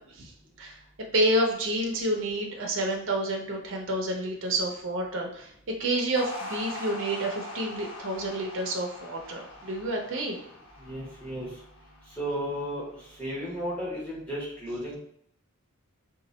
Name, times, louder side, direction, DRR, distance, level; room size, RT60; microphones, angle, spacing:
voice 1, 1.1-5.5 5.8-10.4, right 1 dB, 60° right, 0 dB, 0.6 m, -29 dB
sound 1, 6.2-12.6, left 2 dB, 80° left, 1.1 m, -42 dB
voice 2, 10.8-11.5 12.1-12.8 13.2-15.0, equal, 5° left, -7 dB, 1.2 m, -33 dB
2.9 x 2.4 x 4.1 m, 0.68 s
head